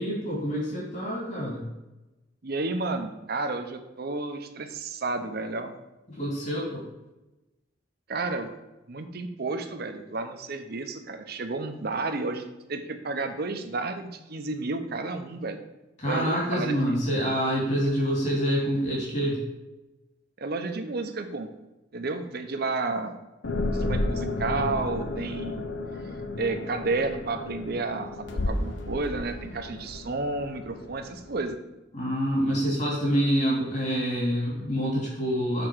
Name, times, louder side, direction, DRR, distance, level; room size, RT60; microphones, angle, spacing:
voice 1, 0.0-1.6 6.1-6.9 16.0-19.4 31.9-35.7, equal, 40° left, -4 dB, 2.6 m, -26 dB
voice 2, 2.4-5.7 8.1-8.5 8.9-12.4 12.7-15.6 16.1-17.0 20.4-21.5 21.9-23.2 23.7-25.7 26.4-28.1 28.5-31.6, right 3 dB, 55° right, 7 dB, 0.7 m, -31 dB
sound 1, 23.4-31.4, left 2 dB, 80° left, 0.8 m, -32 dB
6.8 x 4.3 x 6.2 m, 1.0 s
head